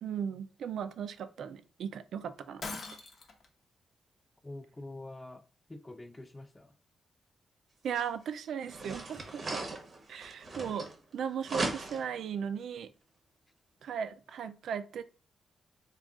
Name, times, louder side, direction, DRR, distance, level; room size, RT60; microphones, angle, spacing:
voice 1, 0.0-2.6 7.8-9.6 10.1-10.8 11.1-12.9 13.8-15.0, right 7 dB, 80° right, 11 dB, 0.3 m, -37 dB
Shatter, 2.6-3.5, left 3 dB, 50° left, 0.7 m, -41 dB
voice 2, 4.4-5.4 5.7-6.7, left 2 dB, 10° left, 9 dB, 0.3 m, -45 dB
sound 1, 8.0-8.1 8.6-11.1 11.4-12.2, right 2 dB, 35° right, 0.7 m, -38 dB
3.6 x 2.3 x 3.6 m, 0.34 s
wide cardioid pair, 145°, 0 cm